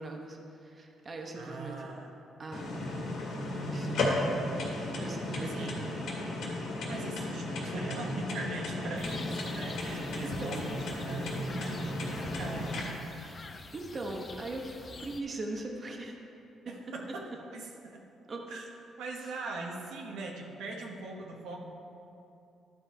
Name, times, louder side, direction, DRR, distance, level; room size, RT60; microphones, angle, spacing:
voice 1, 0.0-1.9 2.4-2.7 3.6-4.1 4.6-5.7 10.2-10.7 13.7-16.1 16.6-16.8 18.3-18.5, right 2 dB, 40° right, 1 dB, 1.0 m, -40 dB
voice 2, 1.3-2.1 5.3-5.9 6.9-13.3 16.7-17.2 17.5-18.1 18.5-18.6 19.0-21.6, right 3 dB, 85° right, 0 dB, 1.1 m, -41 dB
sound 1, 2.5-12.8, left 1 dB, 80° left, 2.0 m, -34 dB
sound 2, 9.0-15.2, left 4 dB, 35° left, 0.5 m, -46 dB
12.0 x 5.3 x 4.5 m, 2.7 s
cardioid pair, 90°, 0 cm